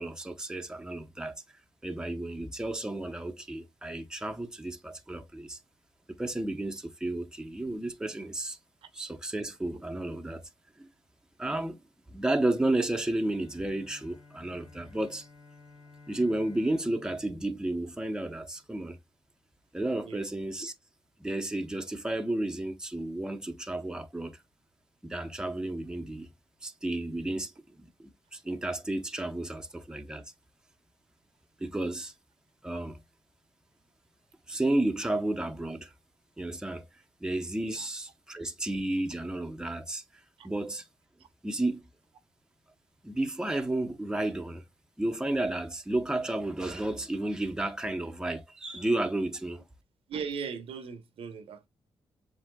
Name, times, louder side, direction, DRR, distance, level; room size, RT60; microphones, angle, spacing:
voice 1, 0.0-1.4 1.8-5.6 6.2-8.6 8.9-10.4 10.8-10.9 11.4-11.8 12.1-15.3 16.1-19.0 19.7-20.7 21.2-24.3 25.0-26.3 26.6-27.5 27.8-30.3 31.6-32.1 32.6-33.0 34.5-35.9 36.4-36.9 37.2-40.0 40.4-40.9 41.4-41.8 43.0-44.6 45.0-49.6, right 1 dB, 5° right, 0.8 m, -32 dB
Bowed string instrument, 12.5-18.7, left 3 dB, 75° left, 2.0 m, -55 dB
voice 2, 50.1-51.7, right 6 dB, 85° right, 0.9 m, -38 dB
7.4 x 2.8 x 2.2 m
cardioid pair, 100°, 9 cm